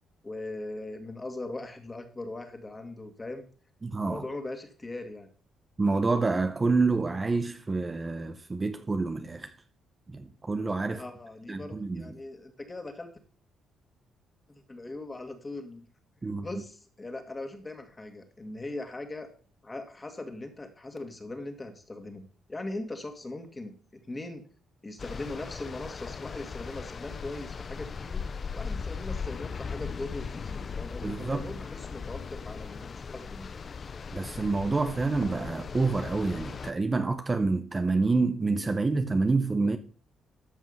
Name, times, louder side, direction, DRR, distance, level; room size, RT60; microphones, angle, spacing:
voice 1, 0.2-3.5 4.1-5.3 10.9-13.1 14.5-15.9 16.2-19.3 19.6-24.4 24.8-28.2 28.5-33.5, left 2 dB, 20° left, 2.2 m, -40 dB
voice 2, 3.8-4.2 5.8-9.5 10.1-11.0 11.5-12.1 16.2-16.5 31.0-31.5 34.1-39.8, right 3 dB, 25° right, 0.9 m, -27 dB
sound 1, 25.0-36.7, left 5 dB, 40° left, 0.6 m, -38 dB
13.0 x 5.5 x 5.6 m
cardioid pair, 90°, 0 cm